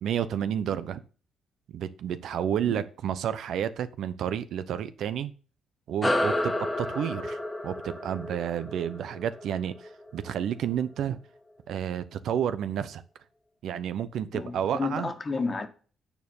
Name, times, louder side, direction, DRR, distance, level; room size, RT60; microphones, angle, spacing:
voice 1, 0.0-1.0 1.7-5.3 5.9-11.2 11.7-13.0 13.6-15.1, right 9 dB, 75° right, 0.8 m, -30 dB
sound 1, 6.0-10.8, left 1 dB, 10° left, 1.4 m, -31 dB
voice 2, 14.3-15.7, left 4 dB, 30° left, 1.6 m, -31 dB
9.2 x 4.5 x 7.1 m
cardioid pair, 90°, 0 cm